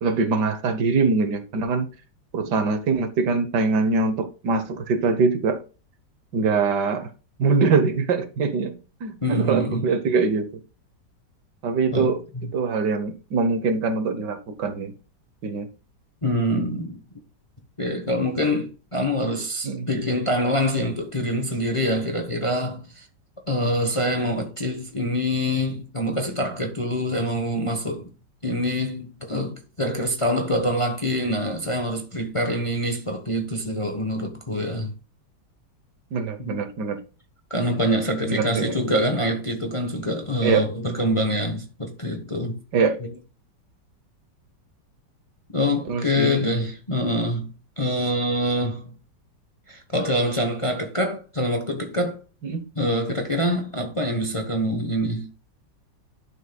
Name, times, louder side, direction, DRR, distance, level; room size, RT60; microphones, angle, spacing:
voice 1, 0.0-1.9 2.3-5.6 6.3-7.1 7.4-10.5 11.6-12.2 12.5-14.9 15.4-15.7 19.6-19.9 36.1-37.0 38.3-38.7 40.4-40.7 42.7-43.0 45.6-46.4 52.4-52.6, right 4 dB, 70° right, 1.6 m, -23 dB
voice 2, 9.2-9.9 11.9-12.5 16.2-17.0 17.8-23.1 23.5-28.1 28.4-34.9 36.4-36.6 37.5-42.6 43.0-43.1 45.5-48.9 49.7-52.2 52.8-55.3, equal, 25° left, 0.9 m, -25 dB
11.5 x 6.4 x 2.3 m
omnidirectional pair, 1.9 m